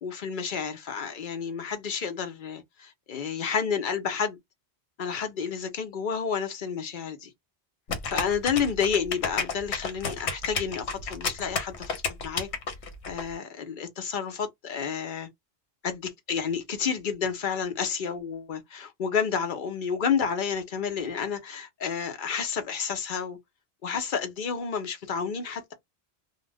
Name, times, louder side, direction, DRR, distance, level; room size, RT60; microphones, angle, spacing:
voice 1, 0.0-4.4 5.0-7.3 8.1-12.5 13.1-15.3 15.8-23.4 23.8-25.7, left 6 dB, 55° left, 0.7 m, -30 dB
sound 1, 7.9-13.2, left 5 dB, 80° left, 1.0 m, -31 dB
2.4 x 2.2 x 3.2 m
omnidirectional pair, 1.1 m